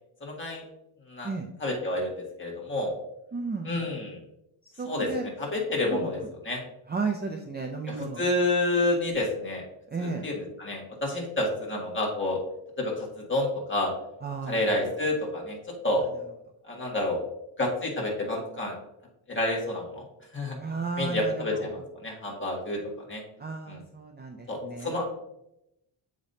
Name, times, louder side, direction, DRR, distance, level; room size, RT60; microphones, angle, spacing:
voice 1, 0.2-0.6 1.1-1.3 1.6-2.9 3.6-4.2 4.8-6.2 6.4-6.6 7.9-9.6 10.0-12.4 12.8-13.9 14.5-15.6 15.8-16.0 16.7-17.2 17.6-18.7 19.3-20.0 20.3-20.6 21.0-23.2 23.7-23.8 24.5-25.0, left 2 dB, 25° left, -2 dB, 1.7 m, -29 dB
voice 2, 3.3-3.9 4.6-5.3 6.0-6.3 6.9-8.2 9.9-10.3 14.2-14.7 20.6-21.8 23.4-24.9, right 4 dB, 20° right, 2 dB, 0.4 m, -34 dB
7.3 x 5.1 x 2.7 m, 0.84 s
wide cardioid pair, 155°, 50 cm